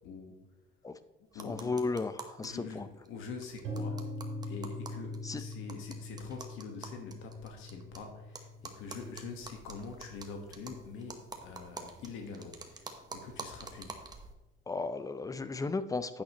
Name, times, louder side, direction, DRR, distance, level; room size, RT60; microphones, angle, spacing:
voice 1, 0.0-0.4 1.3-1.8 2.4-4.0 4.4-14.0, left 4 dB, 80° left, 3 dB, 1.5 m, -45 dB
chattering teeth, 1.3-2.5 2.8-2.9 3.1-3.2 3.4-8.0 8.3-14.3, right 3 dB, 20° right, 1.1 m, -47 dB
voice 2, 1.4-2.1 2.4-2.9 5.2-5.4 14.7-16.2, left 3 dB, 15° left, 12 dB, 0.6 m, -34 dB
sound 1, 3.6-11.5, left 1 dB, 90° right, 3.0 m, -43 dB
10.5 x 8.6 x 3.0 m, 1.0 s
cardioid pair, 115°, 20 cm